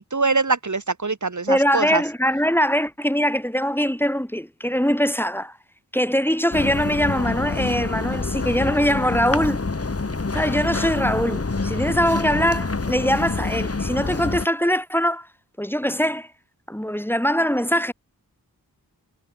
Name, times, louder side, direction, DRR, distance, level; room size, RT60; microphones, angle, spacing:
voice 1, 0.0-2.0, right 4 dB, 50° right, 2.9 m, -23 dB
voice 2, 1.5-5.6 5.9-9.6 10.3-15.3 15.6-16.3 16.7-17.9, equal, 5° left, 3.4 m, -22 dB
sound 1, 6.5-14.5, left 3 dB, 40° left, 2.3 m, -26 dB
wide cardioid pair, 60°, 38 cm